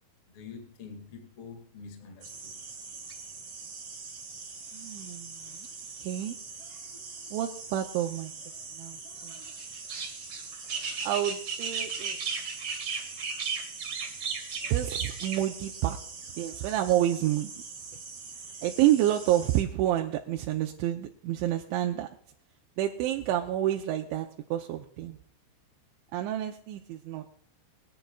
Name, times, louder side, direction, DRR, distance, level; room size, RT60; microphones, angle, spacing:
voice 1, 0.3-2.6, left 5 dB, 45° left, 4 dB, 1.9 m, -46 dB
sound 1, 2.2-19.6, right 5 dB, 45° right, 1.9 m, -38 dB
voice 2, 4.7-5.7 6.0-6.4 7.3-8.3 8.7-9.4 11.0-12.2 14.6-16.0 16.4-17.5 18.6-22.1 22.8-25.2 26.1-27.3, right 13 dB, 80° right, 2 dB, 3.0 m, -29 dB
23.0 x 10.5 x 2.4 m, 0.62 s
omnidirectional pair, 5.4 m